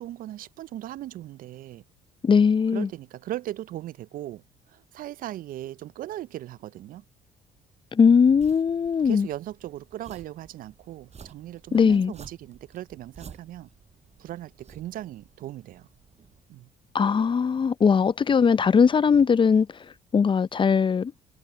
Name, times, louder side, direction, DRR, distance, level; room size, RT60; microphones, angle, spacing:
voice 1, 0.0-1.8 2.7-4.4 4.7-7.0 9.0-13.7 14.2-15.9 16.5-16.7, right 13 dB, 55° right, 0.5 m, -38 dB
voice 2, 2.2-2.9 7.9-9.3 11.7-12.1 16.9-19.7 20.1-21.1, left 6 dB, 30° left, 0.6 m, -20 dB
sound 1, 8.4-16.4, right 6 dB, 40° right, 7.8 m, -51 dB
hypercardioid pair, 60°, 17 cm